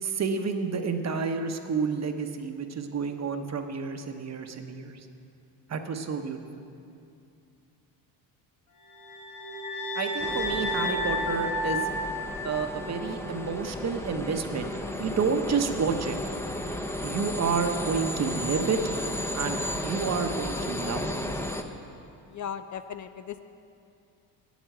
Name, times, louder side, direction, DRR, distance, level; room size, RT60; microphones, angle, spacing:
voice 1, 0.0-5.1 5.7-6.4 9.9-11.9 12.4-14.7 15.0-16.2 17.0-18.9 19.3-21.2, right 5 dB, 40° right, 6 dB, 0.9 m, -30 dB
sound 1, 8.9-13.1, left 1 dB, 65° left, 2.8 m, -32 dB
sound 2, 10.2-21.6, left 1 dB, 5° left, 0.7 m, -34 dB
voice 2, 22.3-23.4, left 8 dB, 45° left, 10 dB, 0.5 m, -37 dB
8.4 x 8.2 x 7.7 m, 2.5 s
cardioid pair, 90°, 41 cm